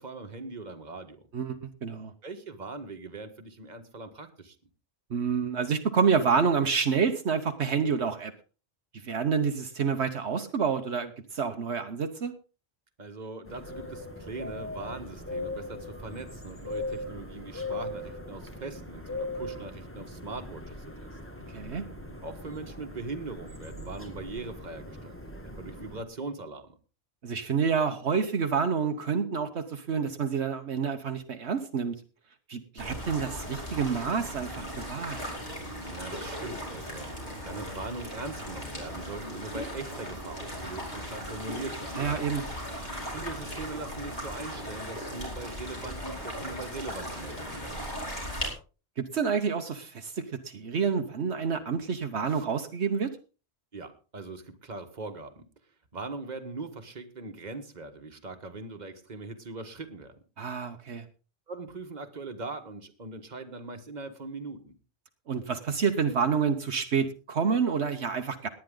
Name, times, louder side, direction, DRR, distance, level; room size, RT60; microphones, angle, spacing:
voice 1, 0.0-1.3 2.2-4.6 13.0-21.2 22.2-25.2 25.4-26.7 35.7-37.1 37.4-42.0 43.1-47.9 48.1-48.3 52.3-52.4 53.7-55.5 55.9-60.2 61.5-64.7, right 3 dB, 40° right, 6 dB, 1.6 m, -41 dB
voice 2, 1.3-2.1 5.1-8.3 9.0-12.3 21.5-21.8 27.2-31.9 32.5-35.2 42.0-42.4 49.0-53.1 60.4-61.0 65.3-68.5, right 6 dB, 75° right, 6 dB, 1.3 m, -28 dB
sound 1, 13.5-26.0, left 2 dB, 10° left, 1.8 m, -40 dB
sound 2, 32.8-48.5, equal, 40° left, 5.2 m, -37 dB
18.5 x 10.0 x 3.8 m, 0.34 s
omnidirectional pair, 1.2 m